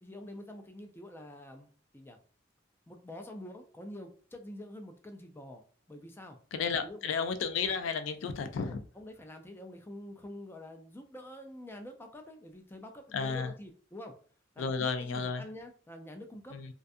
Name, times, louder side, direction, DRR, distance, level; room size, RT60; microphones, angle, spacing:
voice 1, 0.0-2.2 2.9-6.4 6.7-7.1 8.6-14.2 14.6-16.6, left 1 dB, 10° left, 0.3 m, -47 dB
voice 2, 6.5-8.8 13.1-13.5 14.6-15.4 16.5-16.7, left 5 dB, 85° left, 0.4 m, -32 dB
2.4 x 2.3 x 2.6 m
head